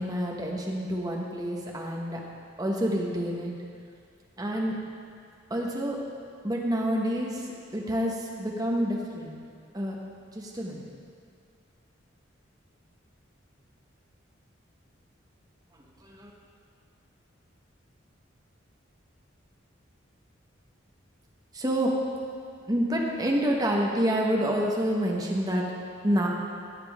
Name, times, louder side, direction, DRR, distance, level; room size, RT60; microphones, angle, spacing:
voice 1, 0.0-2.2 2.6-3.5 4.4-4.8 5.5-6.0 6.4-7.5 7.7-9.3 9.7-10.0 10.3-10.9 16.0-16.3 21.5-21.9 22.7-25.6 26.0-26.3, equal, 20° right, -2 dB, 1.1 m, -28 dB
16.0 x 6.9 x 3.5 m, 2.3 s
head